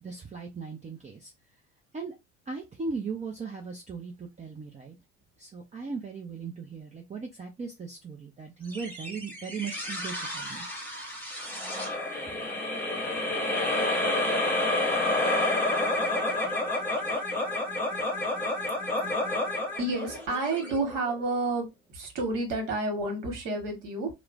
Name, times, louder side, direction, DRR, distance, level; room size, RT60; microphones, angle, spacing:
voice 1, 0.0-1.3 1.9-2.1 2.5-5.0 5.4-10.6 12.3-12.4, right 4 dB, 20° right, 0.6 m, -38 dB
sound 1, 8.7-21.3, left 2 dB, 5° left, 1.1 m, -29 dB
voice 2, 19.8-21.6 21.9-24.1, right 2 dB, 55° right, 1.5 m, -30 dB
3.0 x 2.0 x 2.5 m
hypercardioid pair, 65°, 38 cm